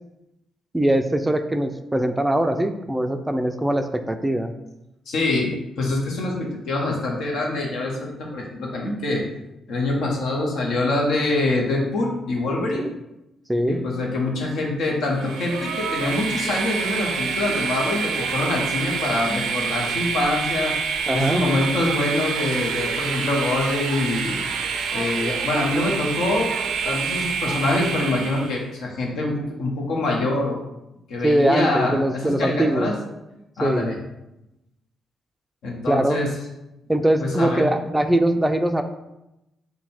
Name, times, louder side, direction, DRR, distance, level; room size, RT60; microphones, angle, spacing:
voice 1, 0.7-4.5 12.8-12.9 13.5-13.8 21.1-21.4 31.2-32.9 33.6-33.9 35.9-36.2 36.9-38.8, right 1 dB, 10° right, 7 dB, 0.3 m, -21 dB
voice 2, 5.1-9.2 9.7-12.9 13.7-20.7 21.1-24.4 24.9-30.6 31.1-32.9 33.6-34.0 35.6-36.3 37.2-37.6, left 2 dB, 75° left, -1 dB, 0.9 m, -25 dB
Train, 15.1-28.6, right 6 dB, 80° right, 0.4 m, -27 dB
3.8 x 2.2 x 4.2 m, 0.92 s
supercardioid pair, 50°, 0 cm